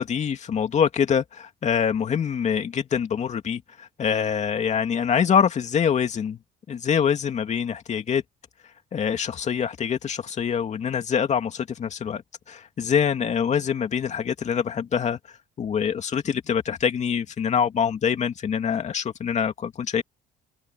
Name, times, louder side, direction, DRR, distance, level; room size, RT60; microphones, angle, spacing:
voice 1, 0.0-6.4 6.7-8.2 8.9-12.2 12.5-15.2 15.6-20.0, left 7 dB, 45° left, 2.6 m, -25 dB
open air
cardioid pair, 110°, 17 cm